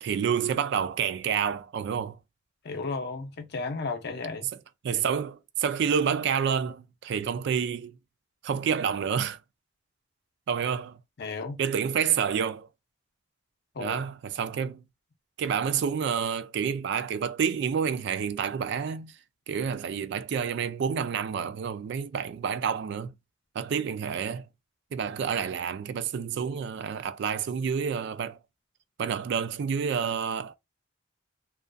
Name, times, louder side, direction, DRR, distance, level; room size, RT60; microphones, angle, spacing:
voice 1, 0.0-2.2 4.8-8.0 8.4-9.4 10.5-11.0 11.6-12.7 13.8-14.8 15.4-19.1 19.5-23.1 23.6-24.5 24.9-28.4 29.0-30.5, right 7 dB, 60° right, 0.3 m, -29 dB
voice 2, 2.6-4.5 11.2-11.6 13.7-14.0, left 3 dB, 60° left, 0.6 m, -34 dB
2.5 x 2.4 x 2.2 m
head